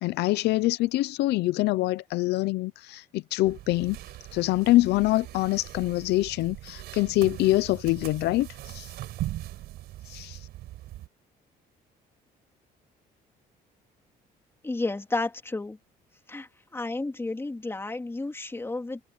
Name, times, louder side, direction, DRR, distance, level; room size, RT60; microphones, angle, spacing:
voice 1, 0.0-4.0 4.3-8.9 10.1-10.4, left 18 dB, 80° left, 0.7 m, -25 dB
sound 1, 3.4-11.1, right 15 dB, 80° right, 4.4 m, -40 dB
voice 2, 14.6-15.8 16.3-19.0, left 2 dB, 15° left, 2.8 m, -32 dB
cardioid pair, 110°, 17 cm